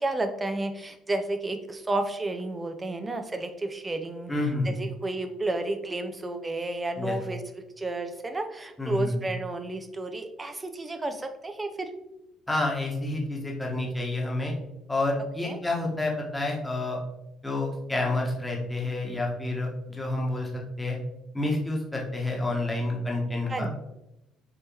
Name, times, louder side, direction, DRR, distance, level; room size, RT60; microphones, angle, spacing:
voice 1, 0.0-4.3 4.6-7.4 7.8-11.9 15.4-15.6 23.5-23.7, right 2 dB, 20° right, 6 dB, 0.5 m, -31 dB
voice 2, 4.3-4.7 7.0-7.2 8.8-9.2 12.5-14.5 14.9-17.0 17.4-20.5 20.8-21.0 21.3-23.7, left 2 dB, 10° left, -1 dB, 1.1 m, -29 dB
4.1 x 3.5 x 2.8 m, 0.91 s
figure-of-eight pair, 50°, 0 cm